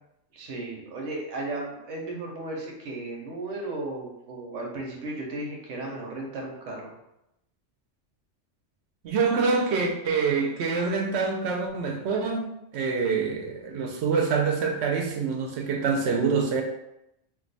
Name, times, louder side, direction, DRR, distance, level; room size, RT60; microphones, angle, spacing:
voice 1, 0.3-6.9, right 2 dB, 90° right, -1 dB, 1.1 m, -35 dB
voice 2, 9.0-12.5 12.7-16.6, right 5 dB, 70° right, 2 dB, 0.8 m, -26 dB
2.6 x 2.3 x 3.9 m, 0.84 s
omnidirectional pair, 1.2 m